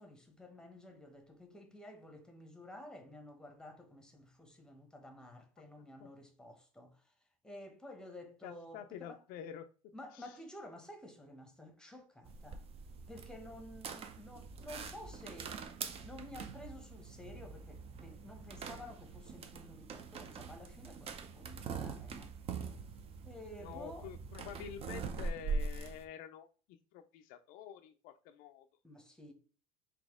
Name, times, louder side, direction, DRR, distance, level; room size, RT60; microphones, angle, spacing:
voice 1, 0.0-7.1 7.4-9.2 9.9-12.7 13.1-15.6 16.0-22.3 23.2-24.1 28.8-29.3, left 1 dB, 5° left, 0.9 m, -52 dB
voice 2, 5.8-6.1 8.4-9.7 10.1-10.4 23.6-28.7, left 9 dB, 65° left, 0.4 m, -48 dB
sound 1, 12.2-26.0, right 4 dB, 35° right, 0.6 m, -43 dB
4.1 x 2.8 x 3.5 m
supercardioid pair, 120°, 16 cm